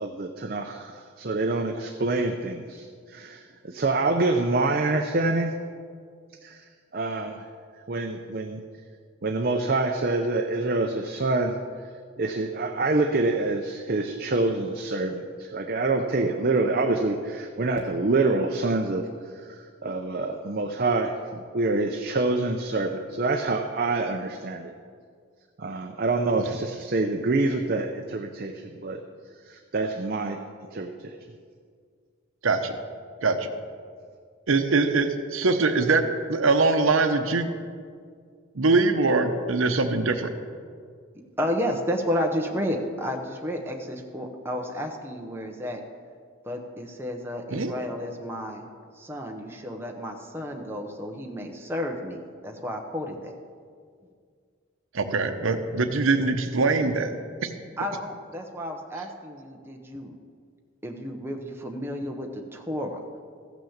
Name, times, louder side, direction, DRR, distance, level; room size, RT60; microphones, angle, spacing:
voice 1, 0.0-5.5 6.4-6.6 6.9-7.4 7.9-8.6 9.2-11.6 12.2-19.1 19.5-24.7 25.6-29.0 29.4-30.4 30.7-31.1, right 2 dB, 45° right, 4 dB, 0.6 m, -26 dB
voice 2, 34.5-37.5 38.6-40.3 47.5-47.7 54.9-57.1 57.4-57.5, right 3 dB, 80° right, 7 dB, 0.8 m, -23 dB
voice 3, 41.4-45.8 46.4-48.6 48.9-53.3 57.8-60.1 60.8-63.0, equal, 10° right, 1 dB, 0.9 m, -32 dB
15.0 x 6.1 x 7.2 m, 2.1 s
head